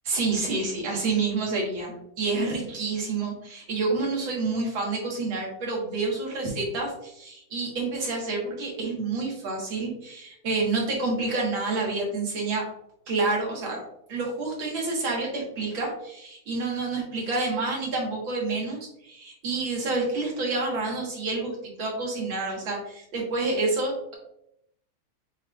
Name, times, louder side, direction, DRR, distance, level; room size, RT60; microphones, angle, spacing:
voice 1, 0.1-12.6 13.1-13.8 14.1-24.1, right 3 dB, 65° right, -2 dB, 2.1 m, -28 dB
7.2 x 3.2 x 2.3 m, 0.78 s
omnidirectional pair, 2.4 m